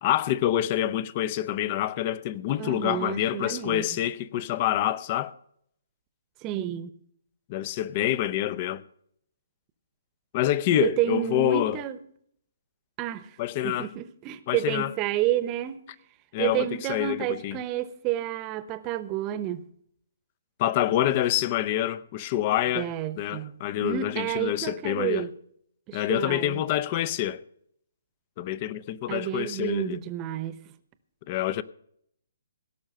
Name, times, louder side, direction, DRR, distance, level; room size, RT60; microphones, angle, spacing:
voice 1, 0.0-5.3 7.5-8.8 10.3-11.8 13.4-13.9 14.5-14.9 16.3-17.6 20.6-22.9 23.2-25.3 25.9-27.4 28.4-30.0 31.3-31.6, left 12 dB, 35° left, 0.6 m, -27 dB
voice 2, 2.6-3.9 6.4-7.0 10.8-12.0 13.0-13.3 13.6-15.8 16.4-19.7 22.7-25.3 25.9-26.7 29.1-30.6, right 13 dB, 25° right, 1.0 m, -30 dB
17.0 x 6.4 x 7.7 m
hypercardioid pair, 140°, 0 cm